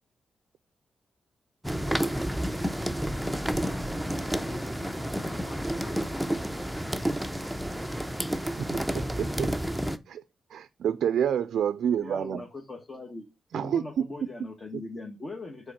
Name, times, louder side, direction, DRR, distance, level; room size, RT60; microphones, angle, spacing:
sound 1, 1.6-10.0, equal, 5° right, 0.6 m, -30 dB
voice 1, 3.1-6.5 7.4-8.1, left 3 dB, 75° left, 1.9 m, -49 dB
voice 2, 8.6-9.5 10.1-10.2 10.5-12.4 13.5-13.8, right 9 dB, 80° right, 0.3 m, -28 dB
voice 3, 12.0-13.3 13.5-15.7, left 2 dB, 35° left, 1.3 m, -40 dB
5.0 x 3.9 x 5.8 m
cardioid pair, 70°, 0 cm